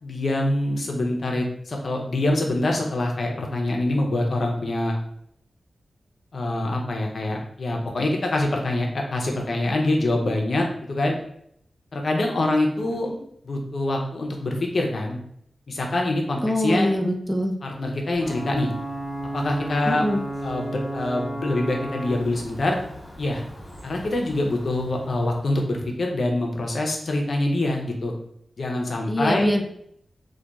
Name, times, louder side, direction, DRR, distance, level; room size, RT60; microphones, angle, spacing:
voice 1, 0.0-5.0 6.3-11.2 11.9-13.1 13.4-15.2 15.7-16.9 17.6-18.7 19.3-20.1 20.4-22.8 23.2-23.4 23.8-28.1 28.6-29.5, left 2 dB, 70° left, 1 dB, 0.5 m, -25 dB
voice 2, 16.4-17.6 19.9-20.2 29.1-29.6, equal, ahead, 2 dB, 0.4 m, -23 dB
Ocean / Boat Water vehicle / Alarm, 18.1-25.7, right 1 dB, 35° left, 0.9 m, -34 dB
2.7 x 2.2 x 2.2 m, 0.70 s
cardioid pair, 60°, 0 cm